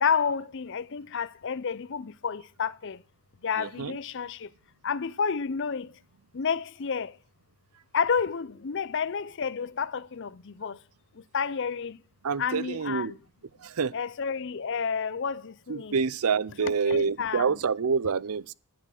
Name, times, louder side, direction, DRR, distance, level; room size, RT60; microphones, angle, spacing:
voice 1, 0.0-3.0 3.4-4.5 4.8-5.9 6.3-7.1 7.9-10.8 11.3-12.0 12.4-13.2 13.9-16.0 16.6-17.6, left 6 dB, 55° left, 0.5 m, -30 dB
voice 2, 3.6-4.0 12.2-13.1 13.6-13.9 15.7-18.5, right 5 dB, 85° right, 0.6 m, -27 dB
11.0 x 9.9 x 6.5 m
head